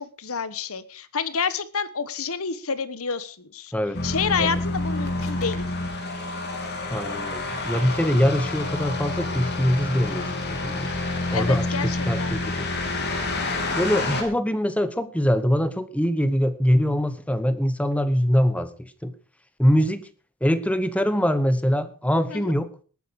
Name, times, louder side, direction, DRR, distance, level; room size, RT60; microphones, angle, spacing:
voice 1, 0.0-3.7 4.0-5.7 11.3-12.3 22.3-22.5, left 5 dB, 70° left, 15 dB, 1.2 m, -29 dB
sound 1, 3.9-14.2, left 2 dB, 50° left, 3.4 m, -28 dB
voice 2, 6.9-10.9 11.3-12.7 13.8-19.1 19.6-20.0 20.4-22.7, equal, 5° left, 12 dB, 1.1 m, -23 dB
20.0 x 9.1 x 4.8 m, 0.36 s
head